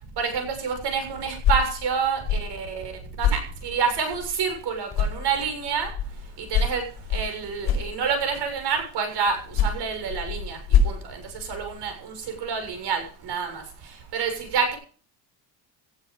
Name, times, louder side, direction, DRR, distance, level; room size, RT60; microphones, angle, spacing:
voice 1, 0.2-2.9 3.2-5.9 6.4-6.8 7.1-10.6 10.8-13.6 14.1-14.8, right 6 dB, 55° right, 6 dB, 7.2 m, -28 dB
sound 1, 1.2-4.6 4.9-8.5 9.3-11.9, left 5 dB, 50° left, 5.4 m, -27 dB
19.0 x 11.5 x 5.1 m, 0.41 s
cardioid pair, 145°, 48 cm